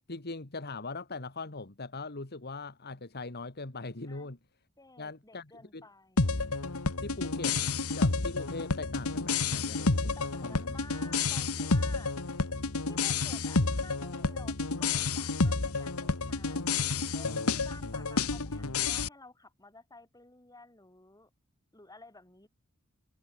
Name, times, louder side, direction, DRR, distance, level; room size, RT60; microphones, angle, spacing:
voice 1, 0.1-4.4 5.0-5.8 7.0-7.6 7.9-10.2 10.4-10.7, left 3 dB, 50° left, 1.9 m, -41 dB
voice 2, 4.8-6.4 10.1-12.2 12.9-16.7 17.1-21.3 21.7-22.5, left 2 dB, 15° left, 5.0 m, -53 dB
sound 1, 6.2-19.1, left 3 dB, 80° left, 1.6 m, -30 dB
head